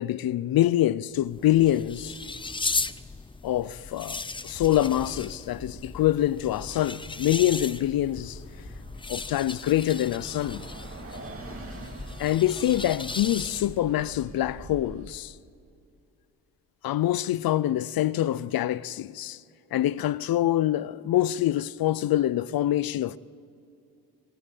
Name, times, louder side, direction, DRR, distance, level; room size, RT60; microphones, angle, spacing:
voice 1, 0.0-2.2 3.4-8.4 9.1-10.6 12.2-15.3 16.8-19.4 19.7-23.2, left 13 dB, 75° left, 0.5 m, -25 dB
sound 1, 1.1-13.9, left 3 dB, 15° left, 0.5 m, -37 dB
Bus, 4.4-15.1, right 2 dB, 40° right, 2.0 m, -45 dB
23.0 x 13.5 x 8.4 m
cardioid pair, 105°, 36 cm